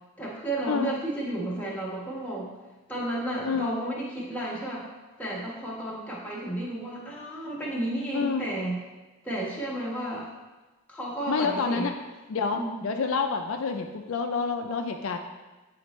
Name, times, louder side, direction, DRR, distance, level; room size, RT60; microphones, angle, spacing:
voice 1, 0.2-2.5 2.9-4.9 5.2-8.8 9.2-10.3 10.9-11.9 12.5-12.8, right 1 dB, 5° left, -6 dB, 1.3 m, -32 dB
voice 2, 3.4-3.8 8.1-8.5 11.3-11.9 12.3-15.2, left 5 dB, 60° left, 4 dB, 0.4 m, -28 dB
9.0 x 4.2 x 3.0 m, 1.2 s
head